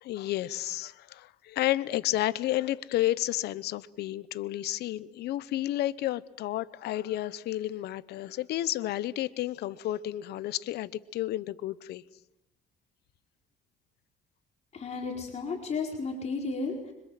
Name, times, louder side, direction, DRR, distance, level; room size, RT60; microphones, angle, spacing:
voice 1, 0.0-12.0, left 14 dB, 75° left, 1.0 m, -31 dB
voice 2, 14.7-16.9, left 4 dB, 40° left, 4.5 m, -33 dB
26.0 x 24.5 x 7.7 m
cardioid pair, 110°, 17 cm